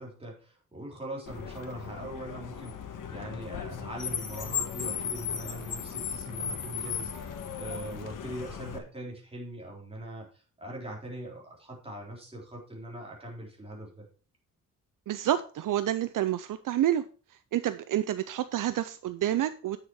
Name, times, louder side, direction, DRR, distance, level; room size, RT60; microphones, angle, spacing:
voice 1, 0.0-14.1, right 1 dB, 15° right, -2 dB, 3.8 m, -41 dB
Car, 1.3-8.8, left 8 dB, 65° left, 1.5 m, -36 dB
voice 2, 15.1-17.0 17.5-19.8, right 12 dB, 65° right, 12 dB, 0.6 m, -28 dB
9.4 x 6.7 x 4.7 m, 0.39 s
wide cardioid pair, 140°, 34 cm